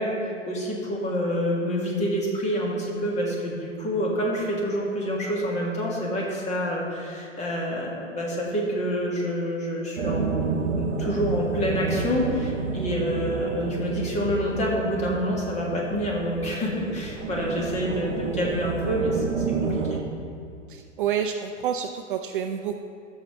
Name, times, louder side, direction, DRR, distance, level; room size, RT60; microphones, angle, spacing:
voice 1, 0.0-10.5 10.8-20.0, equal, 20° left, -3 dB, 1.8 m, -27 dB
sound 1, 9.9-20.0, right 5 dB, 75° right, 0.9 m, -30 dB
voice 2, 20.7-22.8, right 8 dB, 45° right, 6 dB, 0.5 m, -28 dB
15.0 x 6.6 x 3.1 m, 2.5 s
figure-of-eight pair, 105°, 38 cm